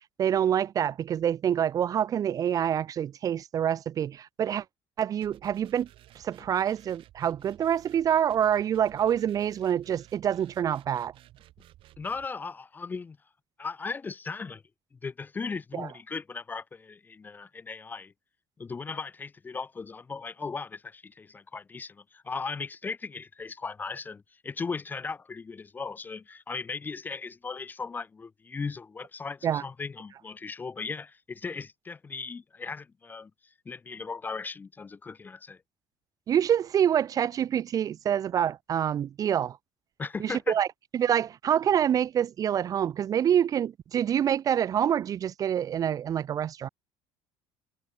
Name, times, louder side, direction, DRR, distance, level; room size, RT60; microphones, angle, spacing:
voice 1, 0.2-4.6 5.0-5.9 6.2-11.1 15.7-15.9 29.4-29.6 36.3-39.6 40.2-40.7 40.9-46.7, right 9 dB, 35° right, 0.6 m, -26 dB
sound 1, 5.2-12.3, right 14 dB, 55° right, 5.2 m, -55 dB
voice 2, 12.0-13.2 13.6-14.6 14.9-18.1 18.6-33.3 33.7-35.6 40.0-40.6, left 4 dB, 15° left, 0.6 m, -37 dB
cardioid pair, 150°, 10 cm